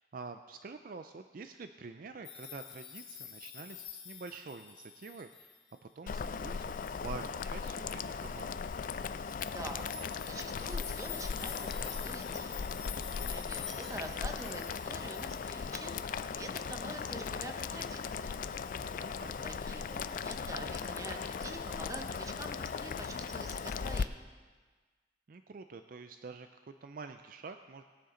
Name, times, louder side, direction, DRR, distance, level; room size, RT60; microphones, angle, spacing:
voice 1, 0.0-5.5 5.8-6.7 7.0-8.6 18.9-19.4 25.3-27.8, right 4 dB, 50° right, 8 dB, 0.4 m, -47 dB
sound 1, 2.2-5.7 6.4-6.5 6.8-6.9 9.3-15.9, left 9 dB, 60° left, 1.5 m, -47 dB
Boiling, 6.1-24.0, left 5 dB, 45° left, 0.3 m, -38 dB
voice 2, 9.4-9.9 10.2-12.7 13.2-15.9 16.3-18.4 19.1-24.3, right 2 dB, 15° right, 4 dB, 0.9 m, -46 dB
Sink (filling or washing), 11.5-12.3 12.6-15.2 15.6-15.7 16.4-18.9 19.2-20.0 20.3-21.6, left 1 dB, 5° left, 1.4 m, -58 dB
18.0 x 9.6 x 3.8 m, 1.4 s
head